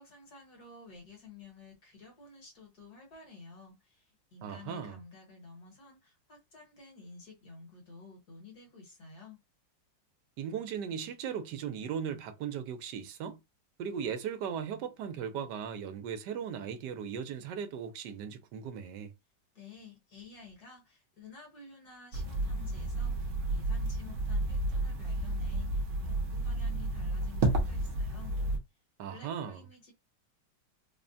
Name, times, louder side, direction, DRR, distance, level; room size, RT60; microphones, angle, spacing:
voice 1, 0.0-9.4 19.6-28.3 29.1-29.9, left 3 dB, 60° left, 1.8 m, -52 dB
voice 2, 4.4-5.0 10.4-13.4 13.8-19.1 29.0-29.6, right 7 dB, 75° right, 1.2 m, -37 dB
sound 1, 22.1-28.6, right 2 dB, 55° right, 0.9 m, -31 dB
3.5 x 2.1 x 2.6 m
omnidirectional pair, 1.9 m